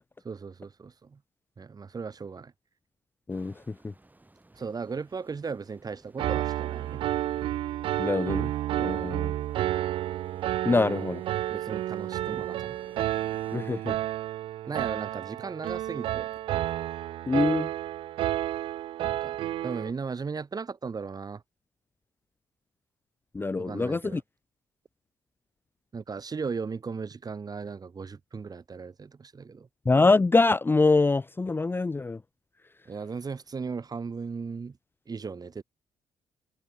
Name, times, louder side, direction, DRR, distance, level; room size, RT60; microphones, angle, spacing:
voice 1, 0.2-1.2 1.6-2.5 4.5-7.0 8.9-9.2 10.9-11.0 11.5-12.8 14.7-16.3 19.0-19.4 19.6-21.4 23.6-24.2 25.9-29.7 32.8-34.8 35.1-35.6, right 5 dB, 35° right, 3.2 m, -37 dB
voice 2, 3.3-3.9 8.0-8.5 8.8-9.3 10.6-11.2 13.5-14.0 17.3-17.7 23.3-24.2 29.8-32.2, left 3 dB, 20° left, 0.6 m, -24 dB
sound 1, 3.3-13.6, right 2 dB, 15° right, 6.2 m, -58 dB
Piano, 6.2-19.9, right 13 dB, 55° right, 0.3 m, -31 dB
figure-of-eight pair, 45°, 11 cm